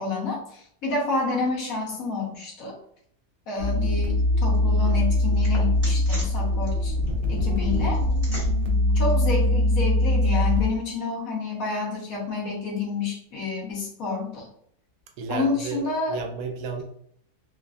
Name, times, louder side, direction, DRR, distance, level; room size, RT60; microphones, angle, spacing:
voice 1, 0.0-2.8 3.5-6.9 7.3-8.0 8.9-14.5 15.3-16.2, left 3 dB, 65° left, -3 dB, 1.3 m, -29 dB
sound 1, 3.6-10.4, equal, 15° right, 1.4 m, -45 dB
sound 2, 3.6-10.7, left 1 dB, 55° right, 0.6 m, -22 dB
voice 2, 15.2-16.8, right 4 dB, 85° right, 4 dB, 1.1 m, -32 dB
3.2 x 2.5 x 2.2 m, 0.67 s
omnidirectional pair, 1.6 m